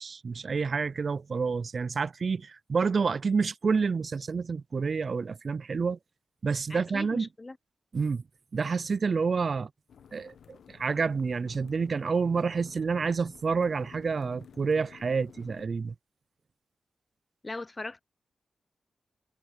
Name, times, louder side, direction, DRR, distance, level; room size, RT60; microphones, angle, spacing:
voice 1, 0.0-6.0 6.4-7.3 7.9-8.2 8.5-9.7 10.1-15.9, right 5 dB, 55° right, 0.3 m, -29 dB
voice 2, 6.7-7.6 17.4-18.0, left 2 dB, 30° left, 0.6 m, -39 dB
sound 1, 9.9-15.7, left 7 dB, 90° left, 0.9 m, -53 dB
cardioid pair, 75°, 0 cm